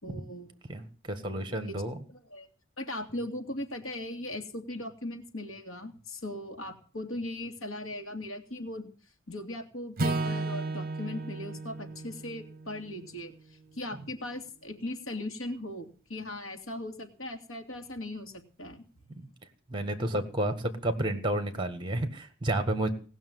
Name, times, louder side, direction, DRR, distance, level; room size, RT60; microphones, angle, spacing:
voice 1, 0.0-0.6 1.7-1.8 2.1-2.5 2.8-8.9 9.3-13.3 13.8-18.3 18.6-18.8, left 1 dB, 65° left, 4 dB, 2.8 m, -38 dB
voice 2, 0.7-2.0 19.2-19.3 19.7-22.9, right 1 dB, 20° right, 9 dB, 1.7 m, -31 dB
Acoustic guitar / Strum, 10.0-14.3, right 2 dB, 40° right, 1.0 m, -35 dB
18.5 x 6.3 x 9.4 m, 0.40 s
head